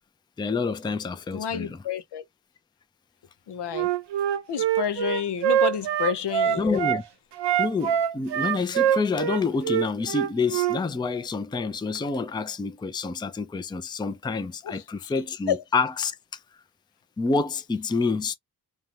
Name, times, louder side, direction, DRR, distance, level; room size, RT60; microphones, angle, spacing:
voice 1, 0.4-1.8 6.6-7.0 7.6-16.4 17.2-18.3, left 4 dB, 10° left, 0.4 m, -28 dB
voice 2, 1.3-2.2 3.5-3.9 4.5-6.7 15.5-15.6, left 8 dB, 75° left, 0.6 m, -29 dB
Wind instrument woodwind instrument, 3.7-7.0 7.4-10.8, right 10 dB, 80° right, 0.6 m, -24 dB
2.6 x 2.3 x 3.0 m
cardioid pair, 85°, 41 cm